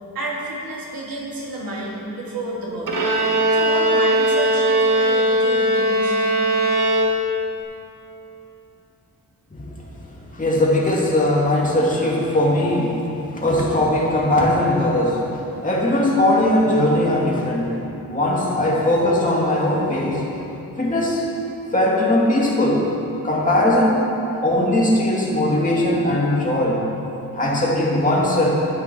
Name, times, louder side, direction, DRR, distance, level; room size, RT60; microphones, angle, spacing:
voice 1, 0.1-3.0 3.5-6.1, right 1 dB, 80° right, -4 dB, 2.9 m, -30 dB
Bowed string instrument, 2.9-7.6, right 1 dB, 65° right, 1.7 m, -19 dB
voice 2, 10.1-17.8 18.1-20.3 20.8-21.3 21.7-22.9 23.2-24.1 24.4-26.9 27.4-28.5, left 1 dB, 20° left, -4 dB, 2.3 m, -19 dB
13.0 x 9.7 x 6.2 m, 2.9 s
wide cardioid pair, 175°, 35 cm